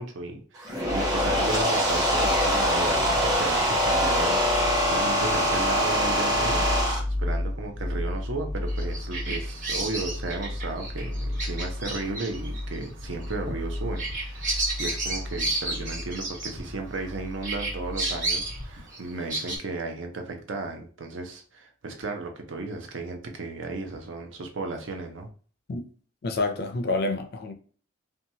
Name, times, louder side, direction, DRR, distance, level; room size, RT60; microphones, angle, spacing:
voice 1, 0.0-6.6 7.2-25.3, right 3 dB, 70° right, 0.6 m, -34 dB
sound 1, 0.6-7.0, equal, 20° right, 0.7 m, -23 dB
sound 2, 0.8-18.7, left 1 dB, 90° right, 1.3 m, -34 dB
Bird vocalization bird call bird song, 8.7-17.1 17.4-19.6, right 2 dB, 40° right, 1.1 m, -32 dB
voice 2, 26.2-27.5, left 2 dB, 55° left, 0.4 m, -28 dB
2.7 x 2.3 x 2.7 m
head